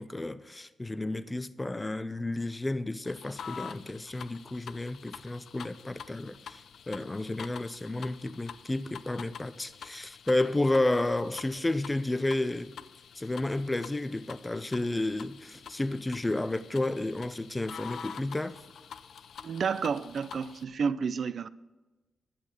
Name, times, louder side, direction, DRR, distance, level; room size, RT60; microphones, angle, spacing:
voice 1, 0.0-6.6 6.9-12.7 13.2-18.6, left 2 dB, 15° left, 0.5 m, -31 dB
sound 1, 3.0-20.6, left 7 dB, 70° left, 0.5 m, -47 dB
voice 2, 19.4-21.5, right 6 dB, 55° right, 0.4 m, -30 dB
11.0 x 8.4 x 5.9 m
wide cardioid pair, 170°, 0 cm